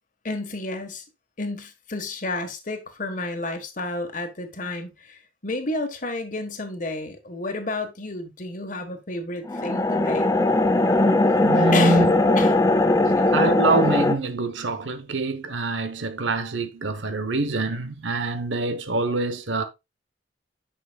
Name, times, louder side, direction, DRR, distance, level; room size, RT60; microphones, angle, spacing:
voice 1, 0.2-1.0 1.4-10.3 11.5-12.1 12.4-12.5 13.0-13.3, left 2 dB, 45° left, 1.4 m, -31 dB
sound 1, 9.5-14.1, left 2 dB, 20° left, 0.6 m, -19 dB
voice 2, 11.4-12.1 13.3-19.6, right 3 dB, 85° right, 0.9 m, -25 dB
9.7 x 6.0 x 2.3 m
head